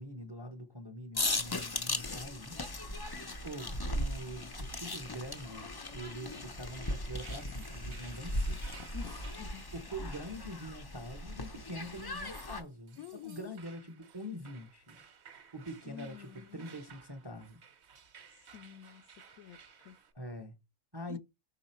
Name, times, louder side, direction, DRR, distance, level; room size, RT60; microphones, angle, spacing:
voice 1, 0.0-2.6 3.4-8.6 9.7-15.0 15.5-17.6 20.1-20.5 20.9-21.2, equal, 25° right, 0.6 m, -44 dB
sound 1, 1.1-12.6, left 1 dB, 35° left, 0.4 m, -38 dB
sound 2, 6.8-20.1, right 7 dB, 50° right, 1.0 m, -58 dB
voice 2, 8.9-9.7 10.0-10.1 13.0-13.6 15.8-16.7 18.5-20.0 21.1-21.2, left 11 dB, 75° left, 1.0 m, -49 dB
6.0 x 3.8 x 4.3 m
omnidirectional pair, 1.6 m